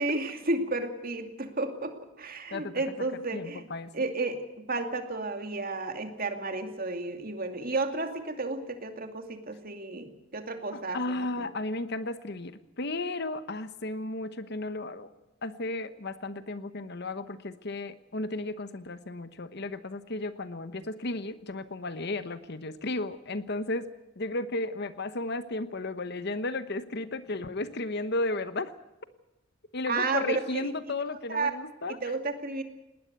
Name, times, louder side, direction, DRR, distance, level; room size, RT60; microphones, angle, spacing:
voice 1, 0.0-3.6 3.9-4.4 4.7-10.1 10.3-11.0 11.4-11.5 29.9-30.7 31.3-31.5 32.0-32.6, right 3 dB, 45° right, 6 dB, 2.6 m, -32 dB
voice 2, 2.5-2.8 3.3-3.9 10.7-15.1 15.4-23.9 24.2-28.7 29.7-32.1, left 2 dB, 50° left, 12 dB, 1.1 m, -34 dB
20.0 x 19.5 x 8.1 m, 0.98 s
head